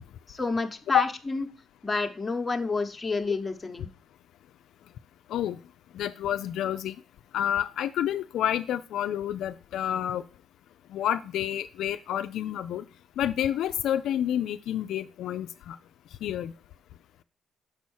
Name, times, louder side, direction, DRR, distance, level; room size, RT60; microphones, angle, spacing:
voice 1, 0.3-1.5 1.8-3.9, left 3 dB, 20° left, 5 dB, 0.9 m, -29 dB
voice 2, 5.9-7.0 7.3-10.2 10.9-12.8 13.2-15.8 16.2-16.5, left 11 dB, 80° left, 9 dB, 0.3 m, -29 dB
6.4 x 4.2 x 6.2 m, 0.36 s
cardioid pair, 90°, 0 cm